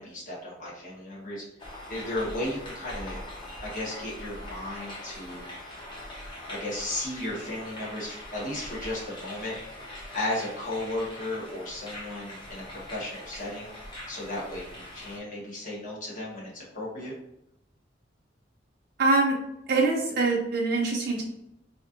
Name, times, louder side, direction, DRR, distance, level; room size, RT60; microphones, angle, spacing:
voice 1, 0.0-1.4 1.9-3.2 3.6-5.4 6.5-9.5 10.1-12.6 12.9-13.7 14.1-17.1, left 1 dB, 45° left, -6 dB, 1.3 m, -35 dB
sound 1, 1.6-15.2, left 1 dB, 25° left, 0.9 m, -42 dB
voice 2, 19.0-19.4 19.7-21.2, right 3 dB, 60° right, -3 dB, 0.5 m, -24 dB
4.3 x 2.5 x 2.5 m, 0.84 s
head